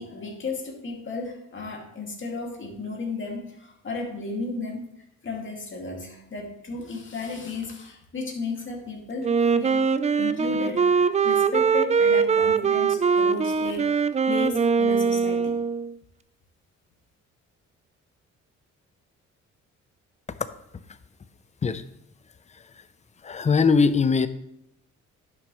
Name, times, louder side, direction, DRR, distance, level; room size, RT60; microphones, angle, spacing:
voice 1, 0.0-4.9 5.2-9.9 10.2-14.0 14.3-15.6, left 3 dB, 40° left, 0 dB, 2.3 m, -34 dB
Wind instrument woodwind instrument, 9.2-15.9, right 5 dB, 25° right, 0.4 m, -22 dB
voice 2, 23.3-24.3, left 5 dB, 25° left, 12 dB, 0.6 m, -20 dB
10.5 x 6.3 x 3.1 m, 0.80 s
cardioid pair, 90°, 30 cm